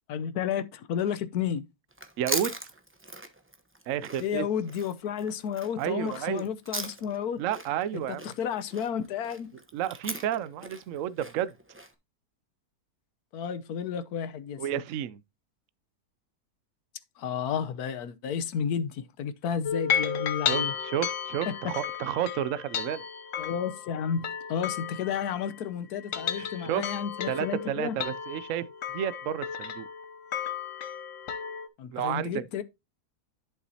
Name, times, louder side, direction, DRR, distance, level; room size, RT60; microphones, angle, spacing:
voice 1, 0.1-1.7 4.2-7.4 7.9-9.5 13.3-14.8 17.2-20.7 21.5-21.6 23.4-28.0 31.8-32.6, left 8 dB, 75° left, 1.3 m, -32 dB
Chewing mastication, 1.9-7.3 7.5-11.9, right 1 dB, 10° right, 0.7 m, -39 dB
voice 2, 2.2-2.5 3.9-4.5 5.8-6.5 7.4-8.3 9.7-11.5 14.6-15.2 20.5-23.0 26.4-26.9 27.3-28.6 28.9-29.9 31.9-32.4, right 10 dB, 65° right, 0.9 m, -31 dB
sound 1, 19.6-25.6 26.0-31.7, left 7 dB, 60° left, 1.1 m, -33 dB
11.0 x 6.1 x 2.8 m
omnidirectional pair, 1.7 m